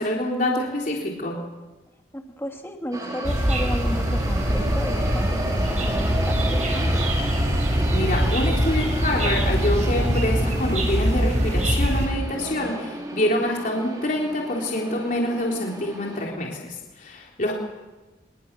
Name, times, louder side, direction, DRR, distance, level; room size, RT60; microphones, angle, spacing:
voice 1, 0.0-1.4 7.9-17.5, left 1 dB, 45° left, -1 dB, 3.6 m, -26 dB
voice 2, 2.1-7.0, equal, 15° left, 3 dB, 2.6 m, -33 dB
sound 1, 2.9-16.3, right 1 dB, 20° right, 4.3 m, -33 dB
sound 2, 3.2-12.1, equal, 40° right, 6.0 m, -23 dB
26.0 x 22.0 x 6.9 m, 1.2 s
head